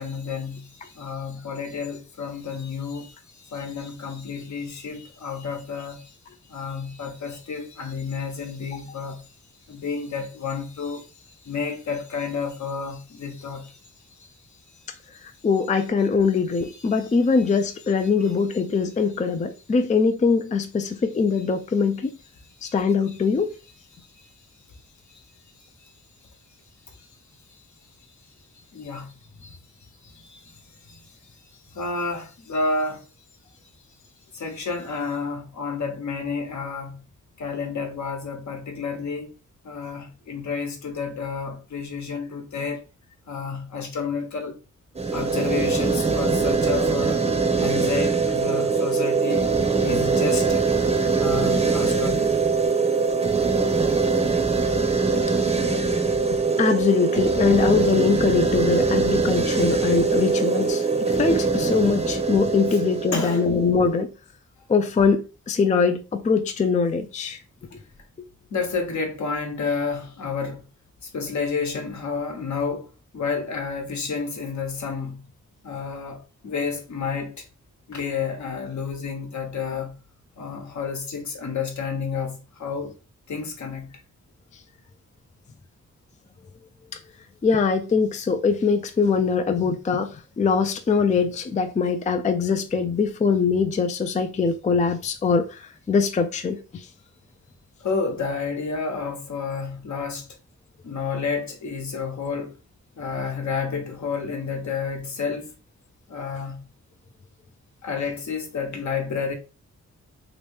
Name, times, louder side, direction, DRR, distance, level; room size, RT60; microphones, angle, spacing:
voice 1, 0.0-6.1 6.5-9.3 9.7-13.8 14.2-14.3 16.7-17.0 18.2-18.3 22.6-22.7 24.2-24.3 27.0-27.1 28.7-29.6 30.0-30.6 30.9-31.1 31.7-33.0 34.3-37.0 37.4-39.3 39.6-42.8 43.3-44.6 45.1-47.2 47.6-49.5 49.8-50.7 51.2-52.3 63.1-63.5 68.5-70.7 71.0-75.2 75.6-77.4 77.9-79.9 80.4-82.9 83.3-84.0 97.8-100.3 100.8-102.6 103.0-105.5 106.1-106.7 107.8-109.3, left 5 dB, 70° left, 1.0 m, -30 dB
voice 2, 15.2-22.1 22.6-23.5 56.6-64.1 64.7-65.2 65.5-67.4 87.4-96.9, left 5 dB, 25° left, 0.4 m, -22 dB
sound 1, 44.9-64.0, right 4 dB, 20° right, 0.7 m, -22 dB
3.1 x 3.0 x 3.3 m
wide cardioid pair, 100°, 30 cm